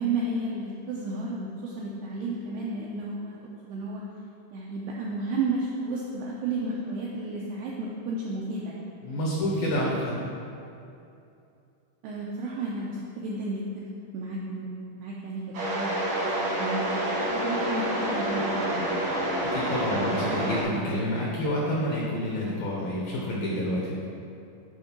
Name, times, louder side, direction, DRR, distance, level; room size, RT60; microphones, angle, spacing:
voice 1, 0.0-3.4 3.6-4.0 4.5-8.8 12.0-13.9 14.1-15.9 16.2-18.8, right 2 dB, 90° right, -4 dB, 2.3 m, -32 dB
voice 2, 9.0-10.2 19.5-24.0, equal, 80° left, -4 dB, 2.0 m, -28 dB
sound 1, 15.5-20.6, right 1 dB, 65° right, 1.1 m, -28 dB
11.0 x 3.7 x 5.8 m, 2.6 s
omnidirectional pair, 5.5 m